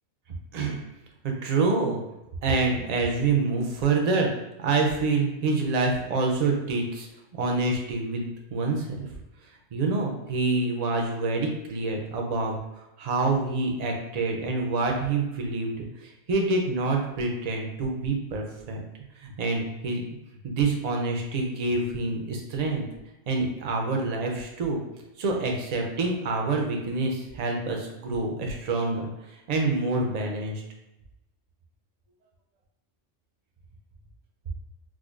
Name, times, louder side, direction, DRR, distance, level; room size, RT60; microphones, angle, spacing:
voice 1, 1.2-2.0 2.4-4.3 4.6-7.1 7.3-9.1 9.7-12.6 13.0-18.8 19.2-20.0 20.4-22.8 23.3-24.8 25.2-29.1 29.5-30.6, right 3 dB, 55° right, 1 dB, 0.4 m, -27 dB
4.7 x 2.1 x 2.4 m, 0.94 s
omnidirectional pair, 1.3 m